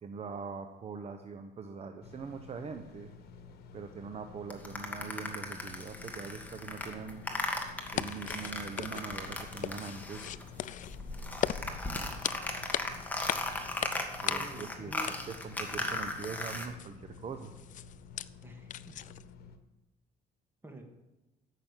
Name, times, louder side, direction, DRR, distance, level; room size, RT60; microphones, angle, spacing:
voice 1, 0.0-3.1 3.7-7.3 7.9-10.3 14.2-17.5, right 5 dB, 40° right, 6 dB, 0.9 m, -42 dB
sound 1, 2.0-19.6, left 5 dB, 70° left, 1.4 m, -52 dB
sound 2, 4.5-10.5 10.8-16.7, left 1 dB, 10° left, 1.8 m, -37 dB
sound 3, 7.8-19.4, left 11 dB, 50° left, 0.4 m, -40 dB
voice 2, 14.3-15.1 18.4-19.0 20.6-20.8, right 1 dB, 15° right, 4 dB, 2.1 m, -47 dB
13.5 x 6.1 x 7.3 m, 1.1 s
cardioid pair, 110°, 17 cm